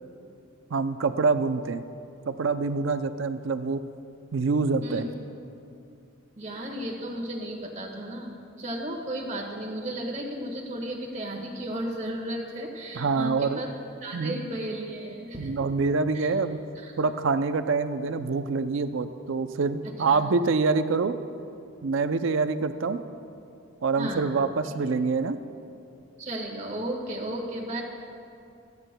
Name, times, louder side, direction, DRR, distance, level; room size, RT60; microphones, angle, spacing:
voice 1, 0.7-1.8 2.3-3.8 4.3-5.0 12.9-13.6 14.1-14.4 15.4-16.6 17.0-21.2 21.8-23.0 23.8-25.4, right 4 dB, 65° right, 10 dB, 0.5 m, -26 dB
voice 2, 6.4-13.7 14.0-15.5 16.1-16.3 16.8-16.9 20.1-20.2 24.0-24.3 26.2-27.8, right 1 dB, 35° right, -1 dB, 1.5 m, -34 dB
26.0 x 9.5 x 2.2 m, 2.6 s
head